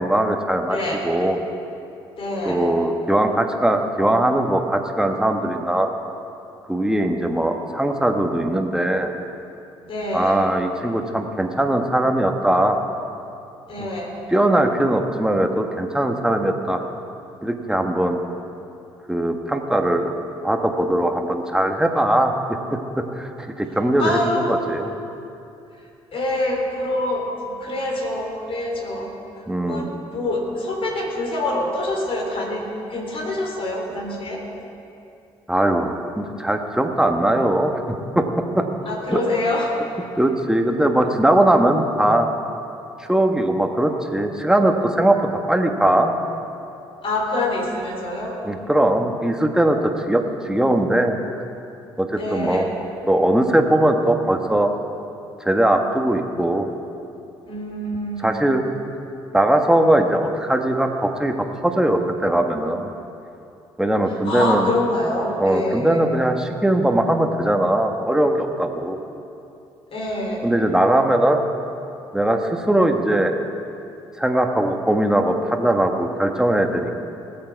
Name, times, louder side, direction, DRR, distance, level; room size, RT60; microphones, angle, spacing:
voice 1, 0.0-0.8 1.0-1.4 2.4-5.9 6.7-9.1 10.1-12.8 13.8-13.9 14.3-16.8 17.4-18.2 19.1-20.1 20.4-24.9 29.5-29.9 35.5-37.7 38.1-38.3 38.5-38.6 39.1-39.2 40.2-42.3 43.0-45.2 45.5-46.1 48.4-51.2 52.0-52.7 53.1-54.7 55.4-56.7 58.2-58.6 59.3-62.9 63.8-64.7 65.4-69.0 70.4-71.4 72.1-73.4 74.2-76.9, right 1 dB, 5° right, 4 dB, 1.4 m, -20 dB
voice 2, 0.7-1.1 2.2-2.7 9.8-10.4 13.7-14.2 24.0-24.5 26.1-27.2 27.6-29.1 29.7-34.4 38.9-39.7 47.0-48.4 52.2-52.7 57.5-58.4 64.2-66.0 69.9-70.5, left 1 dB, 55° left, 0 dB, 3.5 m, -25 dB
19.5 x 7.7 x 4.7 m, 2.7 s
hypercardioid pair, 55°, 11 cm